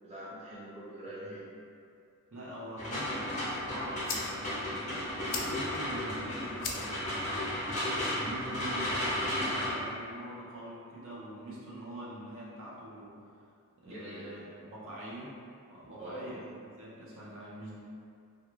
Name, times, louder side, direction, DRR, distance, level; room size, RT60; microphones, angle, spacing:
voice 1, 0.0-1.4 13.8-14.3 16.0-16.2, right 1 dB, 30° right, -11 dB, 0.9 m, -44 dB
voice 2, 2.3-4.9 5.3-7.3 8.1-13.2 13.8-15.3 15.7-17.7, right 1 dB, 60° right, -7 dB, 0.6 m, -44 dB
sound 1, 2.8-9.7, left 1 dB, 35° left, 0.7 m, -34 dB
sound 2, 3.4-9.4, left 4 dB, 55° left, 0.4 m, -44 dB
2.5 x 2.3 x 3.0 m, 2.4 s
head